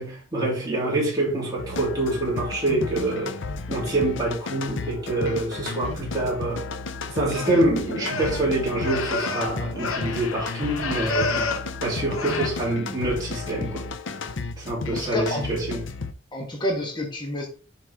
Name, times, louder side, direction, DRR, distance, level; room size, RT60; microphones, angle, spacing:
voice 1, 0.0-3.4 3.7-6.6 7.1-11.5 11.8-13.8 14.6-15.8, right 2 dB, 20° right, 3.0 m, -26 dB
sound 1, 1.6-16.1, left 4 dB, 65° left, 0.6 m, -33 dB
sound 2, 7.3-11.7 12.1-12.5, left 3 dB, 85° left, 0.9 m, -30 dB
voice 2, 14.9-15.5 16.3-17.5, left 1 dB, 20° left, 1.3 m, -28 dB
7.7 x 4.7 x 3.5 m
head